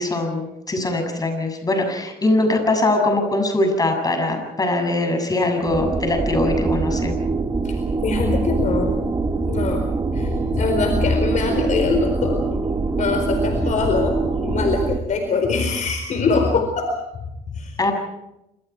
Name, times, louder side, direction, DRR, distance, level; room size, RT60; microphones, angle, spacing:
voice 1, 0.0-7.2 17.8-17.9, left 2 dB, 20° left, 4 dB, 7.4 m, -21 dB
sound 1, 5.6-15.0, right 3 dB, 25° right, 2.1 m, -24 dB
voice 2, 7.6-8.9 9.5-9.8 10.1-12.4 13.0-17.8, left 4 dB, 45° left, 5 dB, 4.4 m, -23 dB
28.5 x 26.5 x 4.7 m, 0.87 s
cardioid pair, 110°, 17 cm